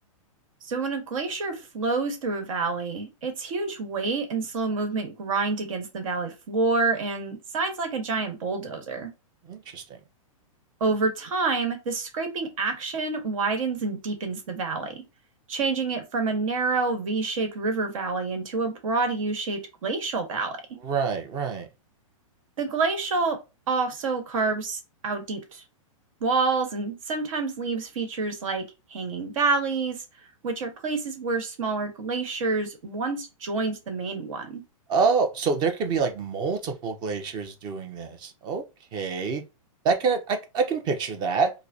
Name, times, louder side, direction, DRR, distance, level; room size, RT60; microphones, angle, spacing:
voice 1, 0.6-9.1 10.8-15.0 15.5-20.5 22.6-23.4 23.7-25.6 26.2-28.6 28.9-30.0 30.4-34.6, right 4 dB, 70° right, 1.3 m, -28 dB
voice 2, 9.4-10.0 20.8-21.7 34.9-38.6 38.9-39.4 39.8-41.5, right 5 dB, 25° right, 0.6 m, -26 dB
4.7 x 2.1 x 2.7 m
hypercardioid pair, 150°, 18 cm